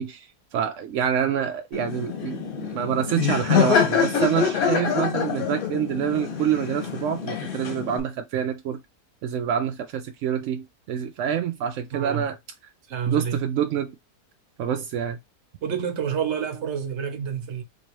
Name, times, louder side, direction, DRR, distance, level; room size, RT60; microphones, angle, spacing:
voice 1, 0.0-8.8 9.2-12.4 13.1-14.0 14.6-15.2, right 9 dB, 70° right, 0.7 m, -27 dB
Laughter, 1.7-8.0, left 7 dB, 60° left, 1.5 m, -25 dB
voice 2, 11.9-12.2 12.9-13.4 15.6-17.6, right 7 dB, 50° right, 1.0 m, -28 dB
3.0 x 2.9 x 4.5 m
omnidirectional pair, 1.7 m